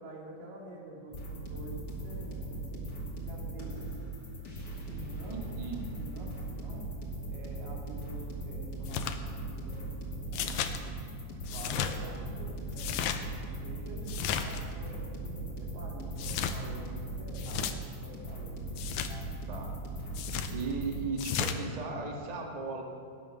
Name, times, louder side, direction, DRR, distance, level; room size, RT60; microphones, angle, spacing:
voice 1, 0.0-3.8 4.8-5.5 5.9-6.9 7.3-10.5 11.4-13.1 13.6-18.7, right 2 dB, 90° right, -3 dB, 4.4 m, -47 dB
sound 1, 1.1-21.0, right 2 dB, 30° left, 2.5 m, -39 dB
voice 2, 5.3-5.9 19.1-19.7 20.5-22.8, right 4 dB, 40° right, 1 dB, 0.5 m, -37 dB
sound 2, 8.9-9.2 10.3-10.8 11.5-11.9 12.7-13.2 14.1-14.6 16.2-16.6 17.3-17.7 18.8-19.1 20.1-20.5 21.2-21.6, left 9 dB, 75° left, 1.9 m, -33 dB
19.5 x 9.6 x 6.1 m, 2.4 s
omnidirectional pair, 3.8 m